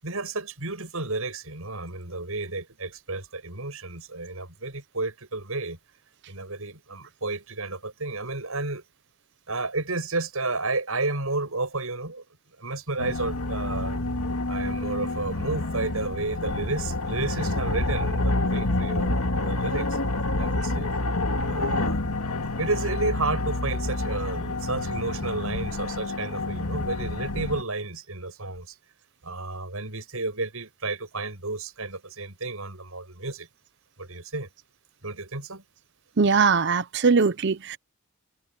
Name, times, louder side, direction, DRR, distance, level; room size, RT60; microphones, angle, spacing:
voice 1, 0.0-5.8 6.3-8.8 9.5-12.2 12.6-14.0 14.5-20.0 20.4-20.9 21.4-22.0 22.6-28.7 29.2-33.5 34.0-34.5 35.0-35.6, right 3 dB, 75° right, 7.0 m, -32 dB
sound 1, 13.0-27.6, left 2 dB, 90° left, 2.1 m, -28 dB
voice 2, 36.2-37.8, right 5 dB, 50° right, 0.7 m, -21 dB
head